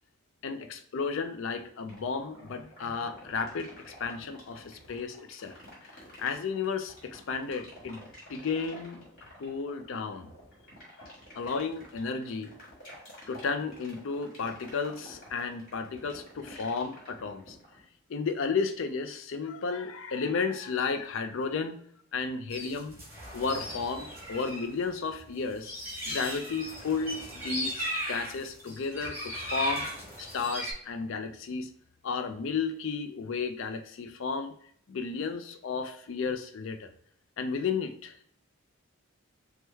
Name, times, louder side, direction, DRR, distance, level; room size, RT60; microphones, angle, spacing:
voice 1, 0.4-5.5 6.2-9.1 9.4-10.3 11.4-12.5 13.3-17.6 18.1-21.8 22.1-23.0 23.3-25.7 26.1-29.9 30.2-31.7 32.0-34.5 34.9-36.9 37.4-38.3, left 5 dB, 60° left, 8 dB, 0.4 m, -33 dB
sound 1, 1.9-17.8, left 1 dB, 40° left, 1.6 m, -50 dB
sound 2, 22.5-24.6 24.9-30.7, equal, 10° right, 1.4 m, -37 dB
4.5 x 2.1 x 3.3 m, 0.63 s
head